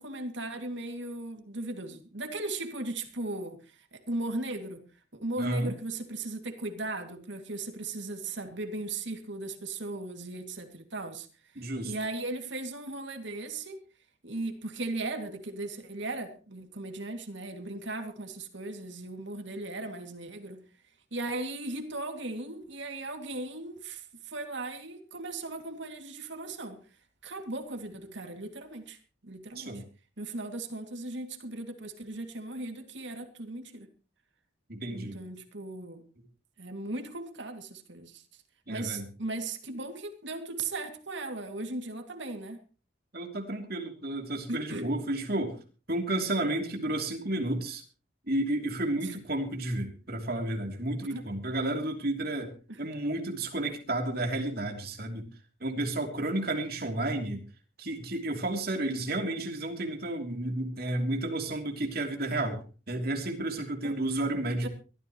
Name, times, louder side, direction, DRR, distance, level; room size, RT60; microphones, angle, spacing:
voice 1, 0.0-4.8 5.1-13.8 14.2-20.6 21.1-29.8 30.2-33.9 34.8-36.1 36.6-38.4 38.7-42.6 44.5-44.9 49.0-49.2 51.1-51.2 52.7-52.8 63.8-64.0 64.6-64.7, right 2 dB, 65° right, 6 dB, 2.5 m, -37 dB
voice 2, 5.4-5.7 11.6-11.9 29.6-29.8 34.7-35.2 38.7-39.1 43.1-45.6 45.9-47.8 48.3-55.3 55.6-57.4 57.8-64.7, right 1 dB, 50° right, 3 dB, 3.0 m, -32 dB
22.5 x 14.0 x 3.1 m, 0.35 s
head